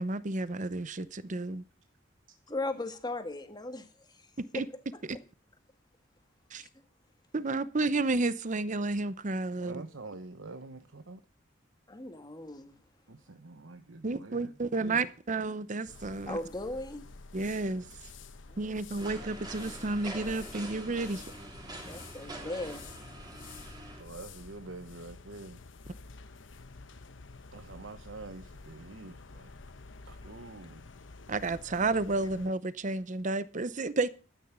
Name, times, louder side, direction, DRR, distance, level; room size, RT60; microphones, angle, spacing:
voice 1, 0.0-1.6 4.4-4.7 6.5-6.7 7.3-9.8 14.0-16.4 17.3-17.9 18.6-21.2 31.3-34.1, right 3 dB, 40° right, 0.7 m, -31 dB
voice 2, 2.5-4.6 6.6-6.7 11.9-12.7 16.3-17.0 18.5-18.8 21.8-22.9, left 2 dB, 20° left, 1.6 m, -38 dB
voice 3, 9.5-11.2 13.1-14.5 14.8-15.1 24.0-25.6 27.5-29.5 30.1-30.8, right 2 dB, 90° right, 1.1 m, -46 dB
sound 1, 15.9-32.5, left 3 dB, 75° left, 0.9 m, -50 dB
sound 2, 19.0-24.0, right 2 dB, 20° right, 3.0 m, -45 dB
12.5 x 9.5 x 6.0 m
head